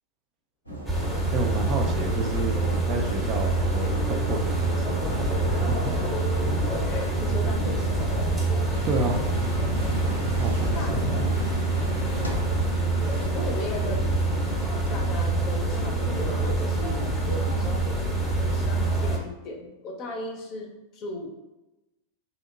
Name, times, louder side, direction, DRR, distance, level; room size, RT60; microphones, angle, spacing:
sound 1, 0.7-18.7, equal, 90° left, 0.8 m, -38 dB
sound 2, 0.9-19.2, right 2 dB, 5° left, 0.8 m, -26 dB
voice 1, 1.3-6.0 8.8-9.2 10.4-11.0, right 3 dB, 35° right, 2 dB, 0.4 m, -31 dB
voice 2, 6.6-8.2 10.7-11.0 13.3-14.1 14.9-17.8 18.4-21.3, left 1 dB, 40° left, 2 dB, 0.6 m, -36 dB
sound 3, 8.7-15.0, left 1 dB, 90° right, 0.5 m, -37 dB
2.7 x 2.1 x 3.7 m, 1.0 s
figure-of-eight pair, 90°, 0 cm